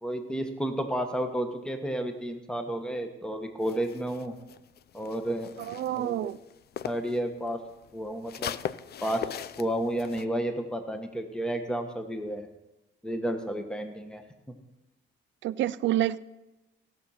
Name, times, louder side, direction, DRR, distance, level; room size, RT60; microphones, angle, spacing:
voice 1, 0.0-4.3 4.9-5.5 6.0-6.3 6.8-7.6 7.9-8.6 9.0-9.3 9.6-12.5 13.0-14.2, right 1 dB, 5° left, 6 dB, 1.3 m, -31 dB
sound 1, 3.6-7.2 7.5-10.2, left 9 dB, 55° left, 0.5 m, -39 dB
voice 2, 5.6-6.4 15.4-16.2, right 13 dB, 70° right, 16 dB, 0.5 m, -28 dB
16.5 x 6.2 x 5.7 m, 0.98 s
cardioid pair, 90°, 20 cm